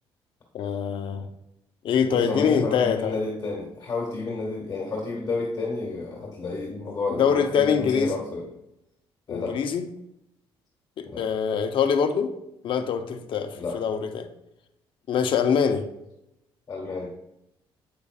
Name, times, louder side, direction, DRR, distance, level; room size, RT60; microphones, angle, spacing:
voice 1, 0.5-1.3 1.8-3.1 7.2-8.1 9.3-9.8 11.0-12.3 12.6-14.3 15.1-15.9, left 7 dB, 60° left, 7 dB, 0.7 m, -24 dB
voice 2, 2.1-8.5 9.3-9.7 11.1-11.3 13.5-13.8 16.7-17.1, left 3 dB, 35° left, -2 dB, 1.8 m, -31 dB
8.4 x 6.8 x 2.4 m, 0.83 s
cardioid pair, 115°, 10 cm